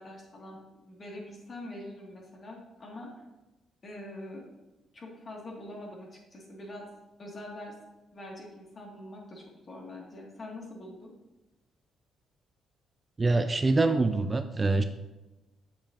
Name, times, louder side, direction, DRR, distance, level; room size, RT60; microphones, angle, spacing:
voice 1, 0.0-3.2 3.8-4.5 4.9-6.9 7.2-7.7 8.1-11.1, left 1 dB, 40° left, -2 dB, 2.4 m, -44 dB
voice 2, 13.2-14.8, right 3 dB, 25° right, 8 dB, 0.4 m, -25 dB
7.7 x 6.9 x 2.9 m, 1.1 s
cardioid pair, 90°, 0 cm